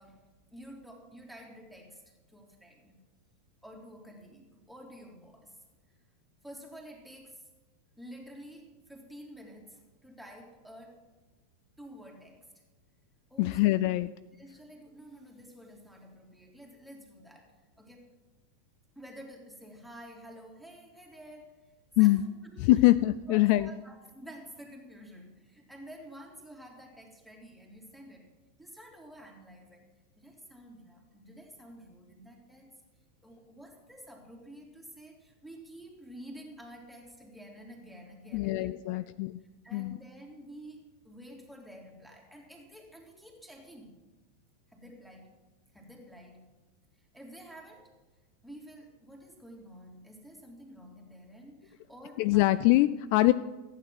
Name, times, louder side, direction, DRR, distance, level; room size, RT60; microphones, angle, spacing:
voice 1, 0.0-3.0 3.6-5.6 6.4-7.4 8.0-11.0 11.8-12.5 13.3-13.9 14.3-18.1 18.9-22.9 23.3-28.3 28.6-32.7 33.2-44.0 44.7-45.3 45.7-46.5 47.0-48.0 48.4-52.5, equal, ahead, 0 dB, 3.1 m, -50 dB
voice 2, 13.4-14.1 22.0-22.2 22.6-23.7 38.3-39.4 39.7-40.0 52.2-53.3, left 18 dB, 45° left, 15 dB, 0.3 m, -23 dB
15.0 x 9.2 x 6.1 m, 1.2 s
figure-of-eight pair, 90°, 0 cm